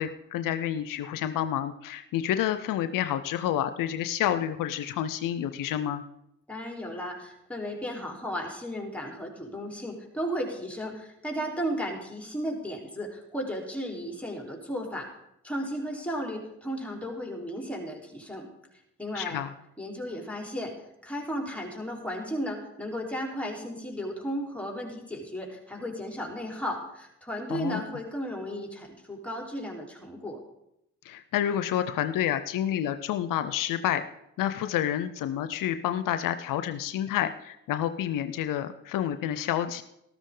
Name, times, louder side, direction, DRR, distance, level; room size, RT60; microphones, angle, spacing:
voice 1, 0.0-6.0 19.2-19.5 27.5-27.8 31.0-34.0 34.4-39.8, left 11 dB, 85° left, 11 dB, 0.6 m, -29 dB
voice 2, 6.5-15.1 15.4-18.5 19.0-19.4 19.8-20.7 21.0-30.4, equal, 5° left, 1 dB, 3.8 m, -34 dB
13.0 x 13.0 x 3.8 m, 0.82 s
supercardioid pair, 40°, 32 cm